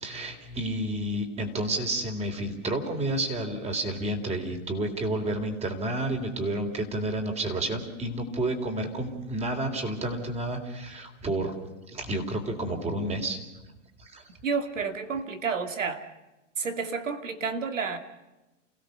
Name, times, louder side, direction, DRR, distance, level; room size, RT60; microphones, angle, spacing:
voice 1, 0.0-11.5 11.9-13.4 14.0-14.2, right 1 dB, 15° right, 4 dB, 3.6 m, -30 dB
voice 2, 14.4-16.0 16.6-18.0, right 5 dB, 90° right, 8 dB, 2.5 m, -30 dB
29.0 x 16.5 x 6.7 m, 1.0 s
hypercardioid pair, 120°, 37 cm